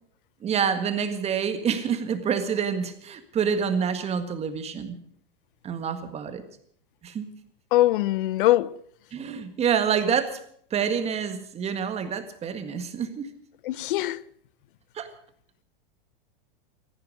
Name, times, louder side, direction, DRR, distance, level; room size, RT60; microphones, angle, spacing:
voice 1, 0.4-5.0 5.6-6.4 7.0-7.3 9.1-10.4 10.7-13.3 14.9-15.1, right 7 dB, 20° right, 1.7 m, -27 dB
voice 2, 7.7-8.8 13.6-14.2, left 15 dB, 65° left, 0.5 m, -22 dB
16.0 x 14.0 x 6.4 m
hypercardioid pair, 135°, 29 cm